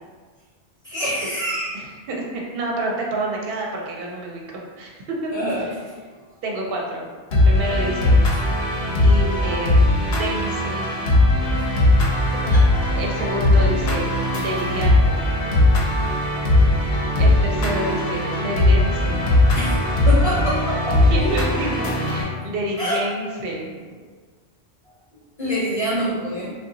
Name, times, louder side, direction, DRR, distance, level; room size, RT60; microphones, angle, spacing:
voice 1, 0.8-1.7 5.3-5.9 12.3-12.8 19.5-21.4 22.8-23.0 25.4-26.5, equal, 40° left, -7 dB, 0.7 m, -26 dB
voice 2, 1.7-5.3 6.4-7.0 7.3-8.2 9.0-9.8 10.2-10.8 13.0-15.2 16.6-16.8 17.1-19.2 21.1-23.7, right 1 dB, 70° right, -1 dB, 0.8 m, -28 dB
sound 1, 7.3-22.2, left 1 dB, 70° left, 0.8 m, -19 dB
2.7 x 2.2 x 3.8 m, 1.5 s
omnidirectional pair, 1.0 m